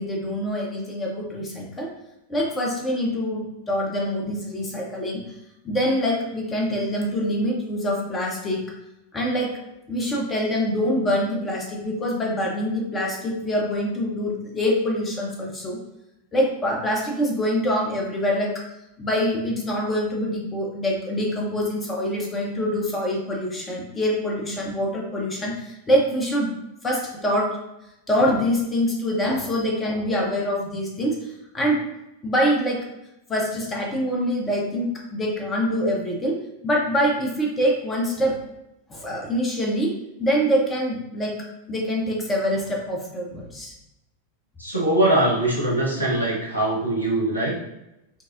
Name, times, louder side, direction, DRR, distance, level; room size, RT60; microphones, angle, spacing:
voice 1, 0.0-1.9 2.3-5.4 5.6-8.6 9.1-9.5 9.9-15.8 16.3-18.6 19.0-26.5 26.8-27.5 28.1-31.9 32.2-32.8 33.3-38.4 38.9-41.4 41.7-43.7, equal, 15° left, -1 dB, 0.7 m, -25 dB
voice 2, 44.6-47.5, right 1 dB, 85° left, -6 dB, 1.1 m, -22 dB
5.9 x 2.0 x 2.5 m, 0.90 s
figure-of-eight pair, 90°, 0 cm